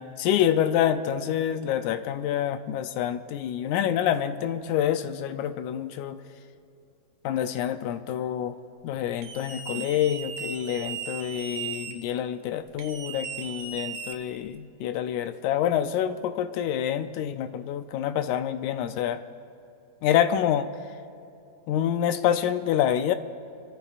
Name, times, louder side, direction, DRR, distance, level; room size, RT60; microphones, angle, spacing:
voice 1, 0.0-6.2 7.2-8.6 8.8-19.2 20.0-20.7 21.7-23.2, left 10 dB, 80° left, 10 dB, 1.9 m, -27 dB
sound 1, 9.2-11.9 12.8-14.6, right 6 dB, 65° right, 1.5 m, -37 dB
26.0 x 14.0 x 2.4 m, 2.7 s
omnidirectional pair, 3.5 m